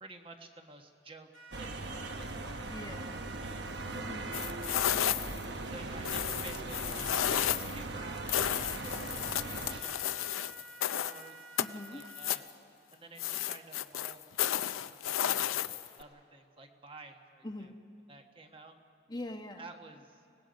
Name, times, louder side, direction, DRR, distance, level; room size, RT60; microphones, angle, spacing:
voice 1, 0.0-1.3 1.6-2.6 3.0-3.6 4.8-5.3 5.7-11.4 11.9-12.4 12.9-17.7 18.1-18.7 19.6-20.2, right 3 dB, 25° right, 4 dB, 1.2 m, -52 dB
sound 1, 1.3-2.2 2.6-4.9 8.7-12.3, right 4 dB, 75° right, 2.5 m, -52 dB
sound 2, 1.5-9.8, right 2 dB, 55° right, 1.1 m, -39 dB
voice 2, 2.7-3.3 3.9-4.3 8.7-9.2 11.6-12.0 17.4-17.8 19.1-19.6, left 1 dB, 20° left, 5 dB, 1.0 m, -43 dB
sound 3, 4.3-5.4 6.0-7.8 8.3-11.2 11.6-12.5 13.2-16.0, left 10 dB, 90° left, 0.6 m, -32 dB
30.0 x 18.5 x 5.2 m, 2.4 s
head